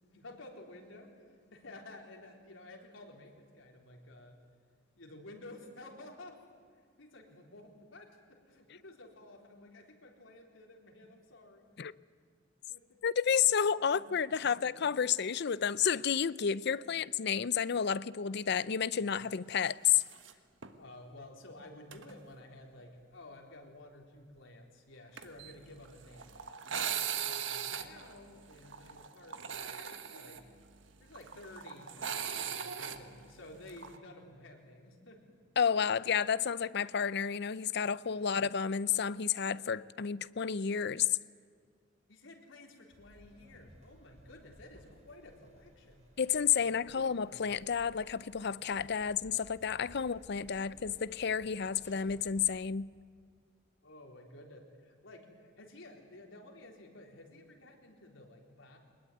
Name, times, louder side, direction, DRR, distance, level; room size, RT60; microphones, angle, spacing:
voice 1, 0.0-4.4 5.0-6.4 6.7-11.7 12.7-13.0 13.5-13.6 13.9-15.0 16.6-17.0 20.8-30.5 31.0-35.2 38.1-38.3 42.1-46.0 46.5-47.4 53.8-58.8, left 2 dB, 90° left, 4.0 m, -53 dB
voice 2, 13.0-20.0 35.6-41.2 46.2-52.9, left 7 dB, 60° left, 0.6 m, -31 dB
sound 1, 20.0-20.3 20.6-20.7 21.9-22.1 25.2-34.0, right 8 dB, 75° right, 1.5 m, -39 dB
sound 2, 42.9-52.5, equal, 35° right, 4.5 m, -59 dB
22.0 x 21.0 x 9.4 m
head